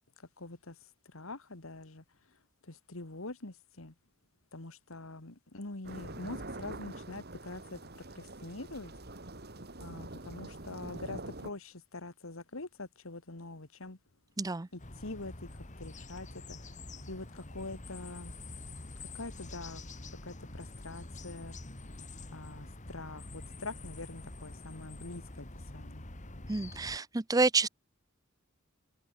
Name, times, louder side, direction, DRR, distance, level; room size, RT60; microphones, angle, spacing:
voice 1, 0.2-2.0 2.6-3.9 4.5-8.9 9.8-14.0 14.7-15.5 15.8-16.6 17.1-18.3 19.0-19.8 20.2-21.6 22.3-26.1, left 2 dB, 75° left, 2.2 m, -44 dB
sound 1, 5.8-11.5, right 2 dB, 50° right, 4.0 m, -45 dB
voice 2, 14.4-14.7 26.5-27.7, right 3 dB, 15° right, 0.5 m, -28 dB
sound 2, 14.8-27.0, left 2 dB, 35° left, 2.2 m, -46 dB
open air
head